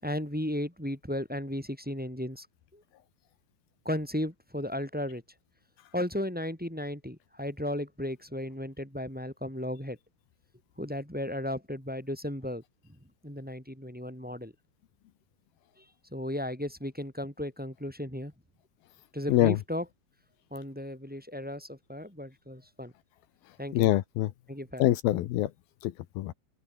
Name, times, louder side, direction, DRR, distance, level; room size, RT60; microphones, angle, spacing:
voice 1, 0.0-2.5 2.7-2.8 3.8-5.2 5.9-10.0 10.8-12.6 13.2-14.5 16.1-18.3 19.1-19.9 20.5-22.9 23.6-23.9 24.5-24.9, left 1 dB, ahead, 4.6 m, -35 dB
voice 2, 23.7-24.3 24.8-25.5 25.8-26.3, left 15 dB, 80° left, 2.9 m, -25 dB
omnidirectional pair, 4.4 m